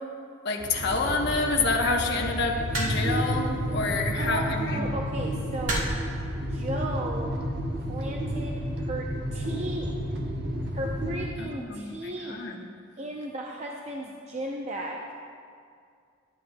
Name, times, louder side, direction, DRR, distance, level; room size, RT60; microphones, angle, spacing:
voice 1, 0.4-4.9 11.4-12.7, left 3 dB, 60° left, 0 dB, 1.0 m, -28 dB
sound 1, 0.6-11.3, equal, 60° right, 1.0 m, -31 dB
sound 2, 2.7-3.3 4.5-4.7 5.7-6.1 7.1-7.4, right 1 dB, 85° right, 2.1 m, -30 dB
voice 2, 4.2-5.8 6.4-7.3 7.7-9.9 10.7-12.4 13.0-15.0, right 1 dB, 35° right, 0 dB, 0.6 m, -35 dB
14.0 x 9.5 x 2.2 m, 2.3 s
head